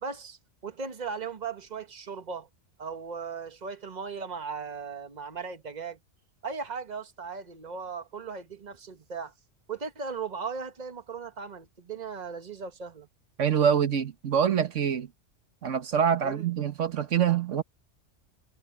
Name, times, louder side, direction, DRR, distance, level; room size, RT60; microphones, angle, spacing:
voice 1, 0.0-2.5 2.8-6.0 6.4-9.3 9.7-13.1 16.2-16.5, right 5 dB, 35° right, 1.5 m, -37 dB
voice 2, 13.4-15.1 15.6-17.6, right 8 dB, 85° right, 1.5 m, -25 dB
omnidirectional pair, 1.2 m